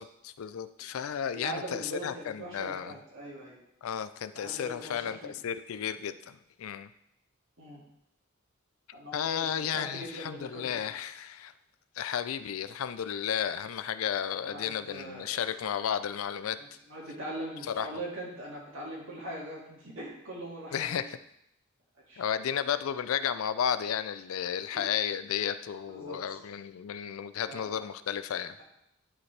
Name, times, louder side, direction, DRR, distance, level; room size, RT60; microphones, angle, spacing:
voice 1, 0.0-3.0 3.8-6.9 9.1-11.5 12.0-16.6 17.7-17.9 20.7-21.2 22.2-28.6, left 8 dB, 75° left, 12 dB, 0.4 m, -33 dB
voice 2, 1.3-3.6 4.3-5.3 7.6-7.8 8.9-10.8 14.4-15.3 16.9-21.1 22.1-22.2 24.7-24.8 25.9-26.2 27.5-27.8, right 1 dB, 65° right, -3 dB, 2.1 m, -41 dB
11.0 x 4.3 x 3.2 m, 0.76 s
head